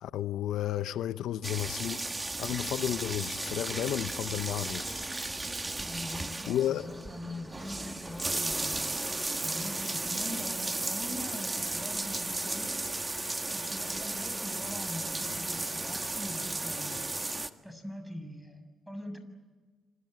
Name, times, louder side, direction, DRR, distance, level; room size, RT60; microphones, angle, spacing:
voice 1, 0.0-2.0 2.4-5.0 6.5-6.9, left 12 dB, 80° left, 0.8 m, -32 dB
sound 1, 1.4-17.5, right 2 dB, 20° right, 1.6 m, -35 dB
sound 2, 2.7-17.6, left 2 dB, 20° left, 2.3 m, -53 dB
voice 2, 5.8-8.9 9.4-13.0 13.5-17.0 17.6-19.2, left 1 dB, 5° right, 6.8 m, -43 dB
28.5 x 26.0 x 7.9 m
cardioid pair, 90°, 0 cm